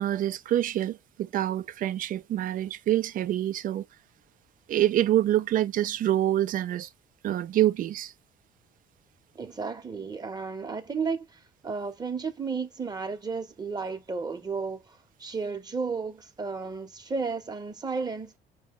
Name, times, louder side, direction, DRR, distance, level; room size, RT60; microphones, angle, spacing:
voice 1, 0.0-3.9 4.7-6.9 7.2-8.1, right 12 dB, 55° right, 0.5 m, -26 dB
voice 2, 9.3-18.4, right 4 dB, 25° right, 0.9 m, -33 dB
5.1 x 2.3 x 3.6 m
cardioid pair, 110°, 17 cm